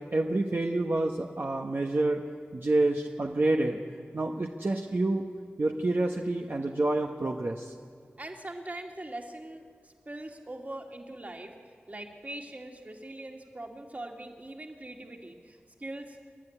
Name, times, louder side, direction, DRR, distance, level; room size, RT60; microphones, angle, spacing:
voice 1, 0.0-2.2 2.5-3.8 4.1-5.2 5.6-7.7, right 2 dB, 60° right, 2 dB, 1.1 m, -28 dB
voice 2, 8.2-11.5 11.9-16.2, right 1 dB, 40° right, 2 dB, 2.4 m, -42 dB
28.0 x 12.0 x 9.9 m, 2.1 s
wide cardioid pair, 70°, 4 cm